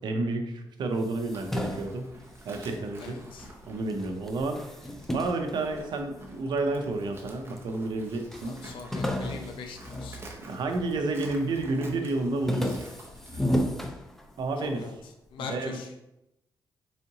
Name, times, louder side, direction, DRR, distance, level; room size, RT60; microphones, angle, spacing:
voice 1, 0.0-2.1 2.4-3.2 3.6-4.7 5.1-8.6 10.5-12.9 14.4-14.8 15.4-15.8, right 2 dB, 60° right, 4 dB, 0.6 m, -30 dB
sound 1, 0.9-3.6 3.9-6.4 7.0-7.7 7.9-8.0 8.3-10.9 11.3-11.7 12.1-14.7, equal, 5° left, 0.4 m, -33 dB
Livestock farm animals working animals, 1.2-13.6, right 1 dB, 30° right, 0.8 m, -49 dB
voice 2, 3.0-3.5 8.4-10.2 14.8-14.9 15.3-15.9, left 5 dB, 80° left, 3 dB, 0.5 m, -41 dB
4.1 x 3.7 x 2.8 m, 0.89 s
cardioid pair, 120°, 8 cm